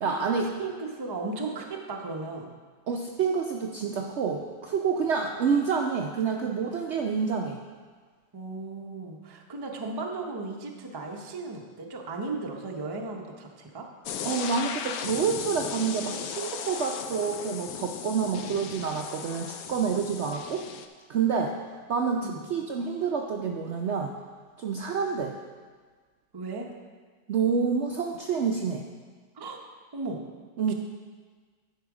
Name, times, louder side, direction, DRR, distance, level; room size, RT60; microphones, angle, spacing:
voice 1, 0.0-0.5 2.9-7.6 14.2-20.6 21.1-21.5 21.9-24.1 24.6-25.4 27.3-28.8 30.6-30.7, right 6 dB, 90° right, 1 dB, 0.6 m, -28 dB
voice 2, 0.6-2.5 8.3-13.9 22.2-22.4 26.3-26.7 29.3-29.6 29.9-30.2 30.7-30.8, right 3 dB, 40° right, 1 dB, 0.3 m, -36 dB
sound 1, 14.1-20.9, left 7 dB, 70° left, 0.9 m, -36 dB
10.5 x 5.7 x 4.8 m, 1.5 s
omnidirectional pair, 1.9 m